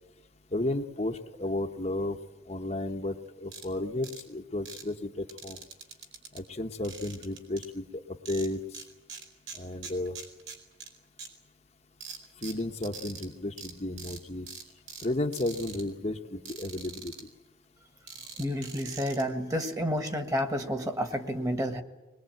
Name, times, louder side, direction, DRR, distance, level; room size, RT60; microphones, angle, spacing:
voice 1, 0.5-2.2 2.5-5.6 6.3-8.8 9.5-10.2 12.4-14.5 15.0-17.3, left 1 dB, 35° left, 4 dB, 0.9 m, -33 dB
sound 1, 3.5-3.7 4.0-4.2 4.7-4.8 5.3-6.4 6.8-7.7 8.3-8.8 9.1-10.9 11.2-11.3 12.0-13.3 13.6-13.7 14.0-14.2 14.5-15.1 15.3-15.8 16.5-17.2 18.1-19.2, right 6 dB, 85° right, 4.5 m, -43 dB
voice 2, 18.4-21.8, equal, 20° right, 7 dB, 1.5 m, -30 dB
21.5 x 21.0 x 9.0 m, 1.1 s
head